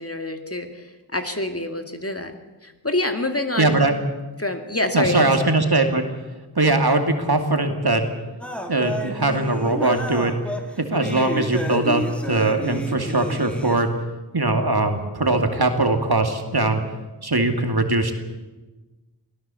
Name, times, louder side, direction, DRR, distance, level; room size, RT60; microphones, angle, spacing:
voice 1, 0.0-2.3 2.6-3.9 4.4-5.6 18.0-18.1, left 2 dB, 35° left, 6 dB, 2.3 m, -27 dB
voice 2, 3.6-3.9 4.9-6.0 6.6-8.0 8.7-10.3 10.8-13.9 14.3-16.8 17.2-18.1, right 2 dB, 65° right, 5 dB, 2.5 m, -20 dB
sound 1, 8.4-13.8, left 1 dB, 5° left, 2.8 m, -31 dB
24.0 x 17.0 x 7.1 m, 1.2 s
wide cardioid pair, 40°, 41 cm